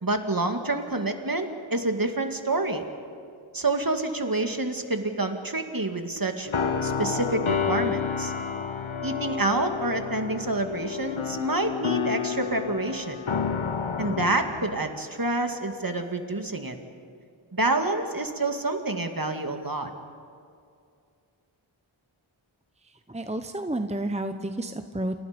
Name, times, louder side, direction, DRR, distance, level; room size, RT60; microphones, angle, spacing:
voice 1, 0.0-2.8 3.5-6.5 6.8-8.3 9.0-13.2 14.0-16.7 17.5-19.9, right 2 dB, 45° right, 5 dB, 2.3 m, -28 dB
sound 1, 6.5-14.9, left 6 dB, 75° left, 1.1 m, -30 dB
voice 2, 22.8-25.2, right 1 dB, 15° right, 7 dB, 1.0 m, -31 dB
29.5 x 28.5 x 5.3 m, 2.3 s
wide cardioid pair, 50°, 49 cm